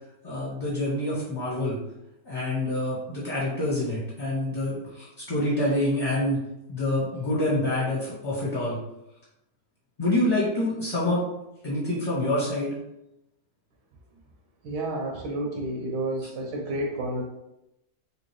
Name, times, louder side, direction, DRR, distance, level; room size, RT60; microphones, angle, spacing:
voice 1, 0.2-1.8 2.2-6.4 6.7-8.8 10.0-11.2 11.6-12.7, left 1 dB, 35° left, -9 dB, 1.4 m, -26 dB
voice 2, 14.6-17.2, right 1 dB, 80° right, 1 dB, 1.2 m, -30 dB
3.4 x 2.8 x 3.0 m, 0.87 s
omnidirectional pair, 1.8 m